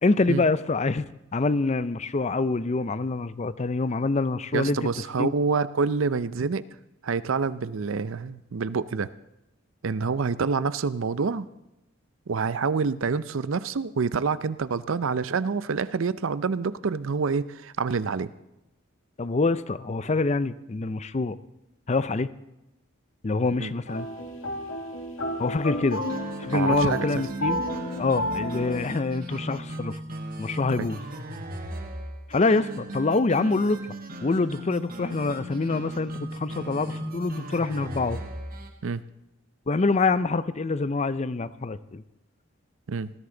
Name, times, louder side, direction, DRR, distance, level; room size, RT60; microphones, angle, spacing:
voice 1, 0.0-1.1 1.3-4.8 5.2-5.3 19.2-21.4 21.9-22.3 23.2-24.1 25.4-26.0 26.4-27.6 28.0-30.0 30.4-31.0 32.3-33.8 34.2-38.2 39.7-42.0, left 3 dB, 35° left, 15 dB, 0.5 m, -25 dB
voice 2, 4.5-6.6 7.0-9.1 9.8-11.5 12.3-18.3 23.6-23.7 26.5-27.2 30.8-30.9 38.8-39.0 42.9-43.1, right 5 dB, 70° right, 16 dB, 0.5 m, -27 dB
sound 1, 23.9-28.9, equal, 80° left, 2.0 m, -31 dB
sound 2, 25.9-38.7, right 1 dB, 45° right, 1.4 m, -37 dB
19.5 x 14.5 x 3.9 m, 0.92 s
head